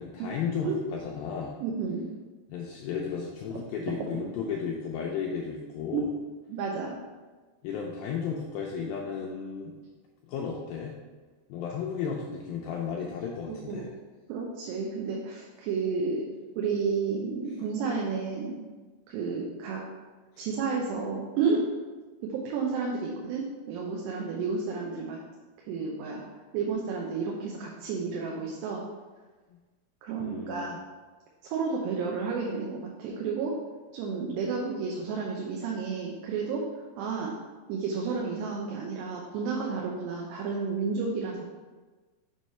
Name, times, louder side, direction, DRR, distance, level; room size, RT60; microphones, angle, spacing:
voice 1, 0.0-1.6 2.5-6.1 7.6-9.7 10.2-10.9 11.5-13.9 20.4-20.5 30.2-30.8, left 6 dB, 80° left, -2 dB, 2.1 m, -34 dB
voice 2, 1.6-2.1 3.5-3.6 5.9-6.0 6.5-7.0 13.5-13.8 14.3-16.3 16.6-18.6 19.1-19.8 20.4-21.7 22.2-25.2 25.7-26.2 26.5-28.8 30.0-30.7 31.5-33.5 33.9-36.6 37.0-37.3 37.7-41.5, right 5 dB, 85° right, -1 dB, 2.9 m, -31 dB
7.3 x 3.1 x 5.4 m, 1.3 s
omnidirectional pair, 4.8 m